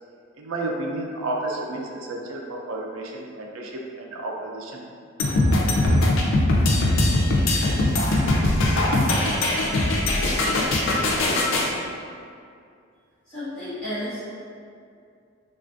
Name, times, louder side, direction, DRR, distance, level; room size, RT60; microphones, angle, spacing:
voice 1, 0.4-4.8 5.7-5.9, right 2 dB, 80° right, 0 dB, 0.4 m, -31 dB
sound 1, 5.2-11.7, left 1 dB, 70° left, 0.4 m, -21 dB
voice 2, 13.3-14.2, left 1 dB, 5° left, -20 dB, 1.1 m, -32 dB
3.2 x 2.4 x 2.5 m, 2.4 s
head